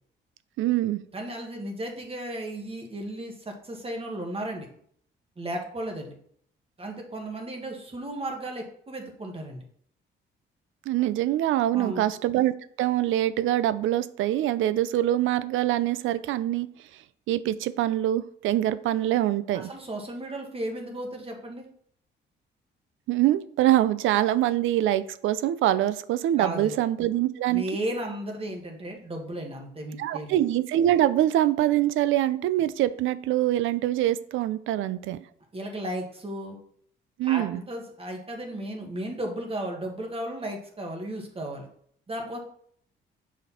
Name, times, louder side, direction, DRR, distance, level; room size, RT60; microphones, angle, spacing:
voice 1, 0.6-1.0 10.9-12.5 12.8-16.7 17.3-19.7 23.1-27.6 30.0-35.2 37.2-37.6, right 13 dB, 80° right, 14 dB, 0.5 m, -24 dB
voice 2, 1.1-4.7 5.4-6.1 6.8-9.6 11.7-12.0 19.5-21.7 26.4-26.8 27.5-30.4 35.5-36.6 37.2-41.7 42.1-42.4, right 1 dB, 30° right, 2 dB, 1.9 m, -35 dB
6.6 x 5.1 x 4.2 m, 0.62 s
cardioid pair, 90°, 20 cm